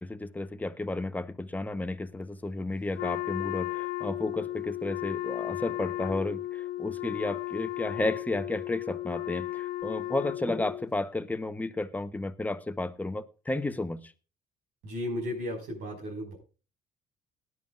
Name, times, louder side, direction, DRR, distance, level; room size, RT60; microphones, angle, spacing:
voice 1, 0.0-14.1, left 2 dB, 10° left, 0.9 m, -32 dB
Wind instrument woodwind instrument, 3.0-10.9, left 17 dB, 85° left, 0.8 m, -35 dB
voice 2, 14.8-16.4, left 1 dB, 80° right, 5.4 m, -34 dB
18.5 x 11.0 x 2.5 m
cardioid pair, 110°, 17 cm